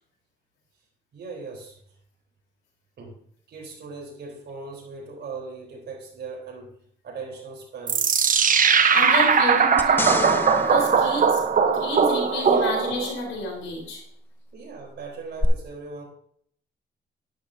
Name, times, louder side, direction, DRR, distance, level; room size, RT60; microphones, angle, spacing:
voice 1, 1.1-1.8 3.0-3.2 3.5-6.7 7.0-8.2 14.5-16.0, right 4 dB, 60° right, 1 dB, 4.0 m, -39 dB
sound 1, 7.9-13.2, right 6 dB, 45° right, 1.0 m, -20 dB
voice 2, 8.6-11.4 11.7-14.0, left 2 dB, 85° left, 0 dB, 4.1 m, -30 dB
sound 2, 9.8-12.3 15.4-15.5, left 2 dB, 10° left, 1.0 m, -30 dB
11.5 x 11.0 x 2.8 m, 0.63 s
cardioid pair, 90°, 20 cm